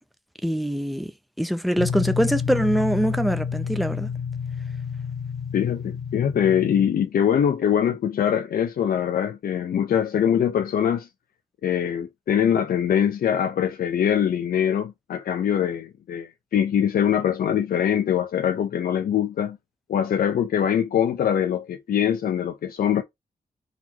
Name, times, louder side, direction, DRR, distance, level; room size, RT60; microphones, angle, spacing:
voice 1, 0.4-1.1 1.4-4.1, equal, ahead, 0.4 m, -23 dB
sound 1, 1.8-6.9, left 6 dB, 50° left, 0.9 m, -29 dB
voice 2, 5.5-11.1 11.6-19.6 19.9-23.0, left 9 dB, 80° left, 0.6 m, -23 dB
4.1 x 2.9 x 4.3 m
wide cardioid pair, 175°, 15 cm